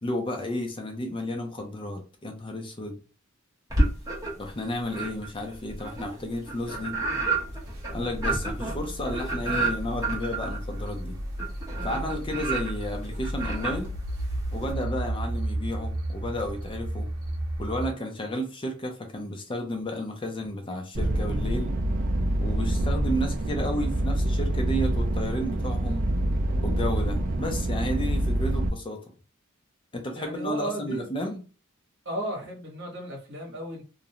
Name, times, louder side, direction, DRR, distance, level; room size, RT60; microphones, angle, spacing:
voice 1, 0.0-3.0 4.4-7.0 7.9-11.2 11.8-13.9 14.5-17.1 17.6-21.7 22.4-26.0 26.6-29.0 29.9-31.4, left 1 dB, 25° left, 0.5 m, -32 dB
sound 1, 3.7-4.5 4.9-14.7, right 2 dB, 20° right, 0.9 m, -30 dB
sound 2, 6.9-17.9, right 1 dB, 85° right, 0.6 m, -34 dB
sound 3, 20.9-28.7, right 1 dB, 40° right, 0.4 m, -26 dB
voice 2, 30.1-31.1 32.0-33.8, right 1 dB, 55° right, 1.0 m, -34 dB
2.5 x 2.2 x 2.8 m
head